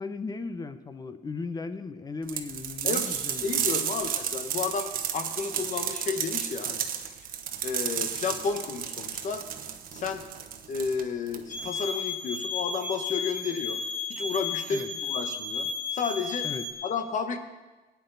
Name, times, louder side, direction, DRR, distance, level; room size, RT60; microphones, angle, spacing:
voice 1, 0.0-3.6 14.7-14.9 16.4-16.7, left 4 dB, 25° left, 12 dB, 0.8 m, -36 dB
sound 1, 2.3-11.7, right 9 dB, 55° right, 1.1 m, -32 dB
voice 2, 2.8-6.8 7.6-9.4 9.9-10.2 10.7-13.8 14.1-16.5 16.8-17.4, left 5 dB, 50° left, 8 dB, 1.2 m, -32 dB
sound 2, 11.5-16.7, left 4 dB, 25° right, 1.9 m, -33 dB
17.0 x 9.5 x 4.0 m, 1.2 s
cardioid pair, 110°, 17 cm